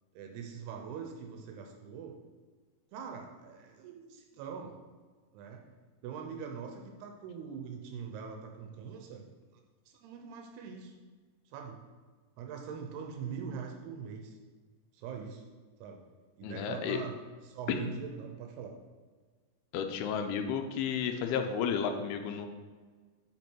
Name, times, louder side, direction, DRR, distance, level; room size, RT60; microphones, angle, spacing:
voice 1, 0.2-2.2 2.9-4.8 5.3-5.6 6.0-9.3 9.9-10.9 11.5-11.8 12.4-14.4 14.9-15.4 15.8-16.0 16.4-17.2 17.4-18.8, right 6 dB, 85° right, 3 dB, 2.8 m, -42 dB
voice 2, 16.4-17.0 17.7-17.8 19.7-22.5, left 7 dB, 85° left, 6 dB, 2.5 m, -32 dB
8.4 x 5.1 x 4.5 m, 1.5 s
omnidirectional pair, 4.5 m